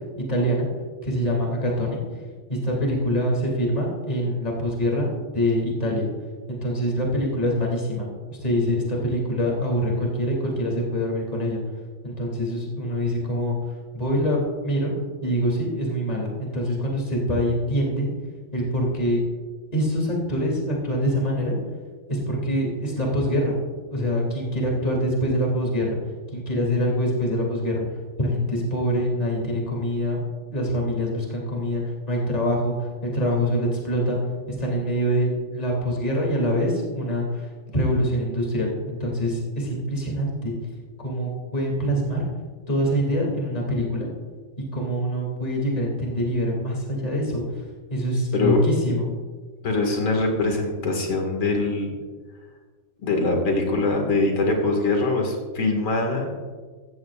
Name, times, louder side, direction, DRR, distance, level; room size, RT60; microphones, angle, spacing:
voice 1, 0.3-0.7 1.0-2.0 2.5-6.1 6.5-11.6 12.0-13.6 13.9-14.9 15.2-18.1 18.5-19.2 19.7-21.5 22.1-23.5 23.9-26.0 26.3-27.9 28.2-30.3 30.5-34.2 34.5-37.5 37.7-40.5 41.0-42.3 42.7-44.1 44.7-47.4 47.9-49.1, equal, 20° left, -2 dB, 2.8 m, -25 dB
voice 2, 49.6-51.9 53.0-56.3, left 2 dB, 80° left, 2 dB, 2.9 m, -23 dB
16.0 x 14.5 x 2.5 m, 1.5 s
omnidirectional pair, 2.2 m